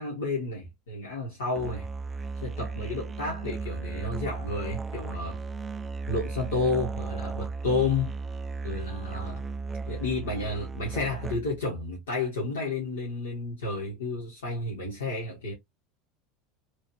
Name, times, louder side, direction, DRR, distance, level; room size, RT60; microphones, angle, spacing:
voice 1, 0.0-1.9 2.4-5.4 6.1-8.2 8.6-9.4 9.8-15.5, left 3 dB, 70° left, 1.4 m, -31 dB
Musical instrument, 1.6-11.7, right 4 dB, 20° right, 0.3 m, -35 dB
3.1 x 2.8 x 2.8 m
figure-of-eight pair, 75°, 0 cm